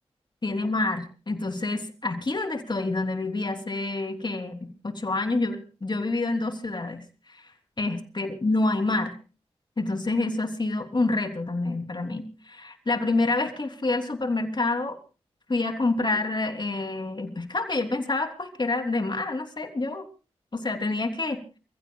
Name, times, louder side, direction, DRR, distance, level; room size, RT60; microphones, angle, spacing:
voice 1, 0.4-7.0 7.8-9.1 9.8-15.0 15.5-20.0 20.5-21.4, left 2 dB, 45° left, 5 dB, 3.4 m, -27 dB
29.0 x 15.5 x 2.4 m, 0.35 s
cardioid pair, 40°, 11 cm